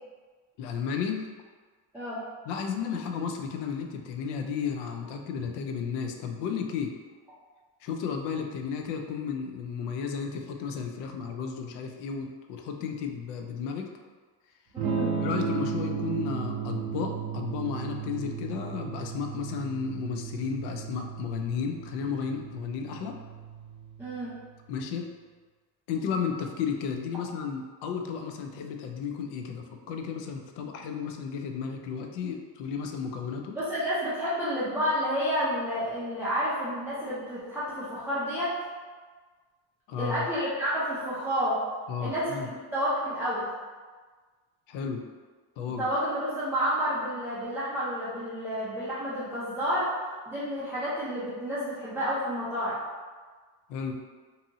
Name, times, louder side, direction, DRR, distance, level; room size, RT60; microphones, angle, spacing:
voice 1, 0.6-1.3 2.5-6.9 7.8-13.9 15.2-23.2 24.7-25.1 25.9-33.6 39.9-40.3 41.9-42.5 44.7-45.0 45.6-45.9 53.7-53.9, left 6 dB, 70° left, 4 dB, 0.5 m, -33 dB
voice 2, 14.7-15.2 24.0-24.3 33.5-38.5 40.0-41.6 42.0-43.5 45.8-49.9 50.3-52.8, equal, 5° right, -11 dB, 0.4 m, -30 dB
Electric guitar / Strum, 14.8-24.5, right 7 dB, 70° right, 0.6 m, -35 dB
2.7 x 2.6 x 2.6 m, 1.4 s
cardioid pair, 140°, 42 cm